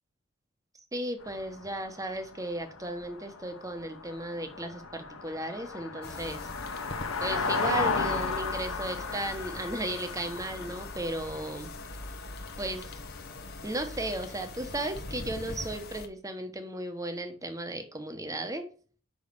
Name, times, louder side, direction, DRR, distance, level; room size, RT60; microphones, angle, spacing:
voice 1, 0.9-6.5 7.2-11.7 12.6-12.9 13.6-18.7, right 1 dB, 15° right, 7 dB, 1.1 m, -35 dB
sound 1, 1.2-14.1 14.4-14.6 14.8-14.9, left 4 dB, 85° left, 1.3 m, -36 dB
sound 2, 6.0-16.1, left 2 dB, 50° left, 1.0 m, -42 dB
5.6 x 5.2 x 6.7 m, 0.41 s
head